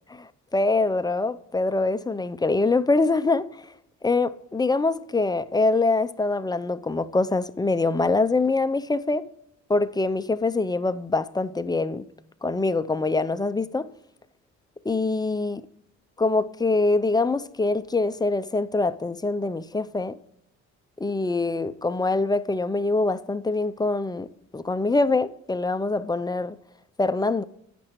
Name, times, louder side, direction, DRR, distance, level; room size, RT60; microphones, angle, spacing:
voice 1, 0.2-3.6 4.0-9.2 9.7-12.1 12.4-13.9 14.8-15.6 16.2-20.2 21.0-24.3 24.5-26.6 27.0-27.4, left 3 dB, 15° left, 0.5 m, -24 dB
17.0 x 6.0 x 3.0 m
cardioid pair, 90°, 30 cm